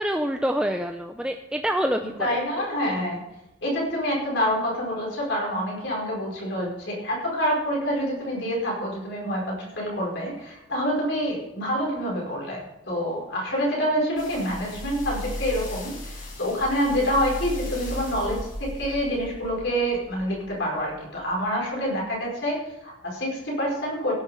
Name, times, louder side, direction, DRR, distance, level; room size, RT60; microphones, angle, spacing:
voice 1, 0.0-2.4, equal, 5° right, 5 dB, 0.4 m, -26 dB
voice 2, 2.2-3.2 3.6-24.1, equal, 60° left, -3 dB, 4.9 m, -27 dB
sound 1, 14.2-20.6 21.2-21.3, left 1 dB, 45° left, 4.8 m, -36 dB
16.0 x 6.9 x 5.6 m, 0.92 s
head